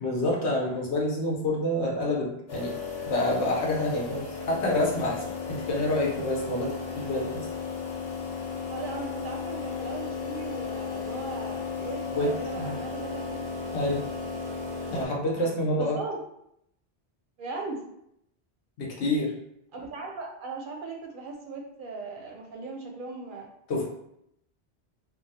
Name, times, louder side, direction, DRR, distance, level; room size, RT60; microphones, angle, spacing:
voice 1, 0.0-2.8 3.0-7.5 12.1-12.7 13.7-14.1 14.9-16.0 18.8-19.3 23.7-23.8, left 1 dB, 90° left, -2 dB, 1.1 m, -28 dB
sound 1, 2.5-15.1, left 5 dB, 70° left, 1.0 m, -35 dB
voice 2, 8.7-13.5 15.4-16.2 17.4-17.8 19.7-23.5, right 3 dB, 60° right, 1 dB, 0.6 m, -38 dB
2.9 x 2.3 x 2.7 m, 0.76 s
omnidirectional pair, 1.1 m